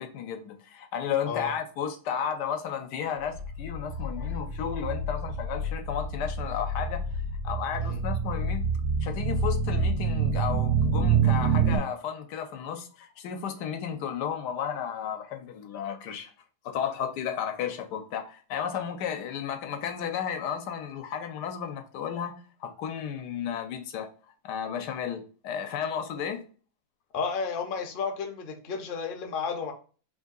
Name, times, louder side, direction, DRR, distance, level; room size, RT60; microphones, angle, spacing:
voice 1, 0.0-7.1 7.4-8.7 9.0-16.3 16.6-24.1 24.4-26.5, left 8 dB, 90° left, 1.3 m, -33 dB
sound 1, 3.3-11.8, right 4 dB, 70° right, 1.1 m, -27 dB
voice 2, 27.1-29.7, left 5 dB, 55° left, 0.6 m, -32 dB
3.4 x 2.6 x 3.7 m
omnidirectional pair, 1.7 m